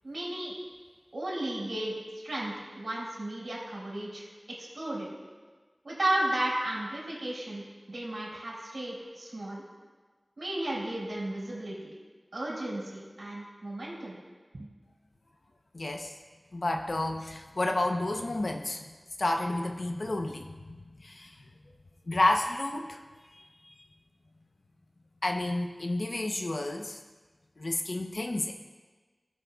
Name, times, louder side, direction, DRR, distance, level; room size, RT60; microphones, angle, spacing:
voice 1, 0.0-0.5 1.1-4.2 4.6-5.1 5.8-9.6 10.4-11.9 12.3-14.2 14.5-14.7, right 1 dB, 90° right, -5 dB, 3.2 m, -34 dB
voice 2, 15.7-16.1 16.5-18.9 19.2-21.4 22.1-23.0 23.3-23.7 25.2-27.0 27.6-28.5, left 2 dB, 75° left, 3 dB, 0.8 m, -31 dB
18.5 x 6.4 x 2.3 m, 1.4 s
wide cardioid pair, 60°, 0 cm